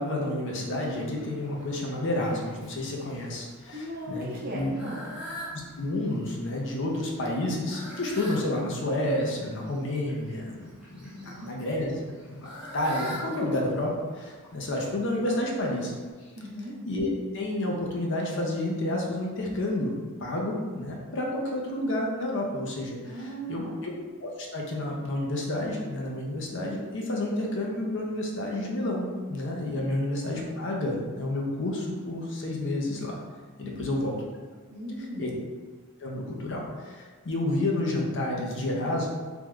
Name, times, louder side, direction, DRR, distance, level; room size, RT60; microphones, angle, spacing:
voice 1, 0.0-4.3 4.5-4.7 5.8-11.9 12.3-15.9 16.9-23.9 24.2-33.2 33.6-34.2 35.2-35.3 36.0-39.1, left 1 dB, 55° left, -1 dB, 0.6 m, -30 dB
Fowl, 0.7-16.1, equal, 5° right, 0.7 m, -46 dB
voice 2, 3.7-5.2 11.1-11.5 16.4-16.7 23.0-23.9 29.8-29.9 30.2-30.5 33.6-34.0 34.7-35.3, equal, 45° right, -3 dB, 0.7 m, -38 dB
3.4 x 2.4 x 3.0 m, 1.5 s
head